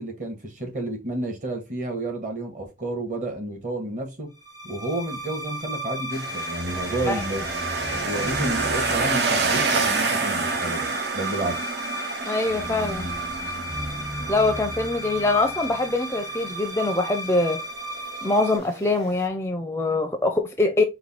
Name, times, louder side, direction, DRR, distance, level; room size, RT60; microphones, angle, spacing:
voice 1, 0.0-4.3 4.6-7.4 7.9-11.7, right 1 dB, 45° right, 1.4 m, -31 dB
sound 1, 4.4-18.6, right 1 dB, 20° right, 0.7 m, -33 dB
sound 2, 6.1-19.3, right 4 dB, 70° right, 0.7 m, -29 dB
voice 2, 12.3-13.1 14.3-17.6 18.2-20.8, left 2 dB, 15° left, 0.4 m, -23 dB
4.8 x 2.2 x 4.2 m
head